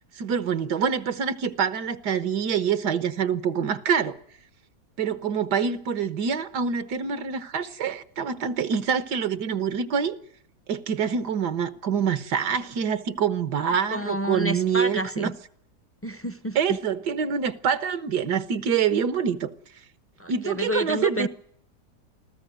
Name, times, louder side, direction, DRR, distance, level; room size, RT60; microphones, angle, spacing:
voice 1, 0.2-4.2 5.0-10.2 10.7-15.3 16.6-19.5 20.3-21.3, right 7 dB, 80° right, 1.8 m, -26 dB
voice 2, 13.6-15.3 16.0-16.8 20.2-21.3, equal, 20° left, 0.4 m, -29 dB
24.5 x 15.0 x 9.3 m
omnidirectional pair, 1.7 m